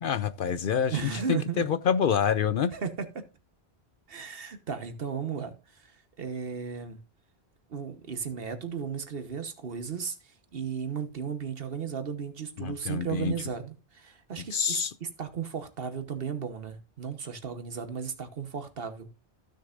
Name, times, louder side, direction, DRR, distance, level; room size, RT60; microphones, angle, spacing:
voice 1, 0.0-2.7 12.6-13.4 14.5-14.9, left 7 dB, 60° left, 0.7 m, -27 dB
voice 2, 0.9-1.7 2.7-3.2 4.1-5.9 6.2-7.0 7.7-19.1, right 6 dB, 60° right, 1.3 m, -35 dB
15.5 x 6.5 x 2.5 m
omnidirectional pair, 1.1 m